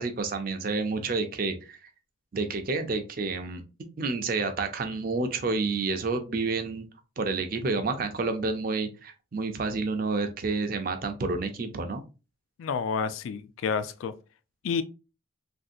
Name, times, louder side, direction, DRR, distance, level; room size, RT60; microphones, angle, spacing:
voice 1, 0.0-1.8 2.3-3.6 4.0-6.8 7.2-12.0, right 3 dB, 45° right, 0.4 m, -29 dB
voice 2, 12.6-14.1 14.6-14.8, left 6 dB, 85° left, 0.3 m, -29 dB
3.1 x 2.6 x 2.5 m
head